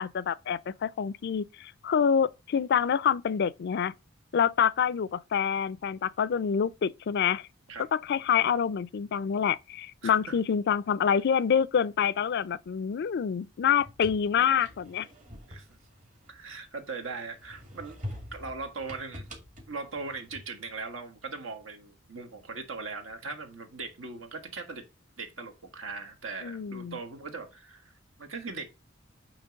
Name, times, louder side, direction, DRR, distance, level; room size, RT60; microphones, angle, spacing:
voice 1, 0.0-3.9 4.3-7.5 7.9-15.1 26.4-27.0, left 7 dB, 55° left, 0.4 m, -27 dB
voice 2, 10.0-10.4 15.5-15.7 16.3-18.0 18.3-19.3 19.7-24.8 25.2-27.9 28.2-28.7, right 4 dB, 75° right, 1.4 m, -39 dB
sound 1, 13.6-16.9 17.3-20.7, left 1 dB, 40° right, 2.0 m, -45 dB
8.9 x 3.0 x 5.1 m
head